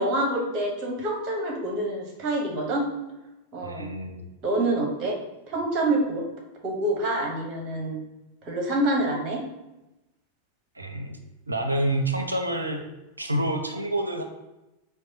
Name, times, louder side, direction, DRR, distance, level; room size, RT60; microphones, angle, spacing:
voice 1, 0.0-2.9 3.5-3.9 4.4-5.1 5.5-6.2 6.6-8.0 8.4-9.4, right 1 dB, 35° right, 0 dB, 0.9 m, -26 dB
voice 2, 3.6-4.2 10.8-11.2 11.5-12.8 13.2-14.2, right 1 dB, 80° right, 5 dB, 0.4 m, -28 dB
4.5 x 2.2 x 2.7 m, 0.97 s
figure-of-eight pair, 90°, 0 cm